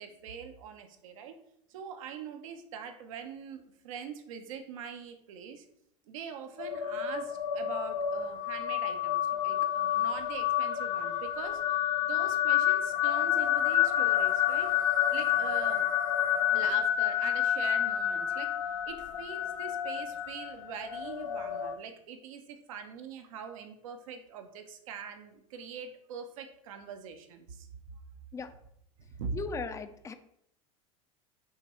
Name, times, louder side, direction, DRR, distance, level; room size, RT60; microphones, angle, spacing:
voice 1, 0.0-1.4 1.7-5.6 6.1-14.8 15.1-15.9 16.5-27.7 29.2-29.4, right 6 dB, 75° right, 7 dB, 0.8 m, -43 dB
sound 1, 6.6-21.7, left 10 dB, 80° left, 0.5 m, -29 dB
voice 2, 29.3-30.2, left 4 dB, 20° left, 10 dB, 0.4 m, -37 dB
5.8 x 3.1 x 3.0 m, 0.72 s
hypercardioid pair, 95°, 17 cm